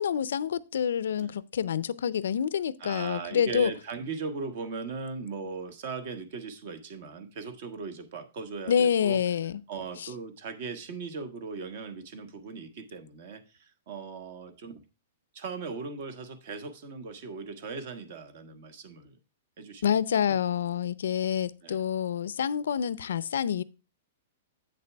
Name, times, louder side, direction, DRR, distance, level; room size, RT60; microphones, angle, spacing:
voice 1, 0.0-3.7 8.7-9.6 10.0-10.1 19.8-23.6, left 8 dB, 80° left, 0.5 m, -27 dB
voice 2, 2.8-9.2 9.7-14.8 15.3-19.2 19.6-19.9 20.3-20.4 21.6-21.8, right 4 dB, 45° right, 1.3 m, -38 dB
8.4 x 6.7 x 3.4 m
hypercardioid pair, 170°, 0 cm